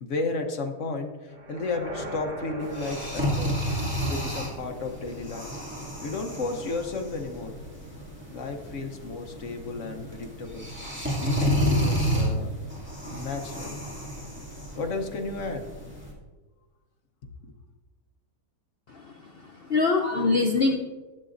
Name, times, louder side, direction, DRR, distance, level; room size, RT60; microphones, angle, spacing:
voice 1, 0.0-3.5 4.0-5.5 6.0-7.5 8.3-10.7 11.2-12.5 13.1-13.7 14.8-15.6, left 3 dB, 55° left, 5 dB, 1.0 m, -33 dB
sound 1, 1.3-5.4, right 1 dB, 85° right, 2.8 m, -42 dB
sound 2, 2.6-16.1, equal, 5° right, 2.1 m, -31 dB
voice 2, 18.9-20.8, left 3 dB, 70° left, 3 dB, 0.5 m, -24 dB
11.5 x 8.1 x 2.5 m, 1.3 s
omnidirectional pair, 1.8 m